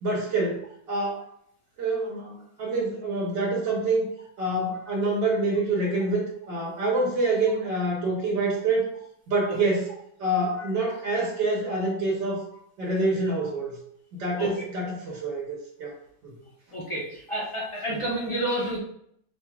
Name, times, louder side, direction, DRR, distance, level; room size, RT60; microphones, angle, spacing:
voice 1, 0.0-0.6 0.9-1.2 1.8-4.1 4.4-8.9 9.3-9.9 10.2-12.4 12.8-13.8 14.1-15.9 16.2-16.3 17.9-18.0, right 2 dB, 65° right, -3 dB, 1.5 m, -26 dB
voice 2, 16.7-18.8, right 1 dB, 30° left, -4 dB, 0.6 m, -29 dB
5.3 x 3.0 x 2.3 m, 0.70 s
omnidirectional pair, 2.1 m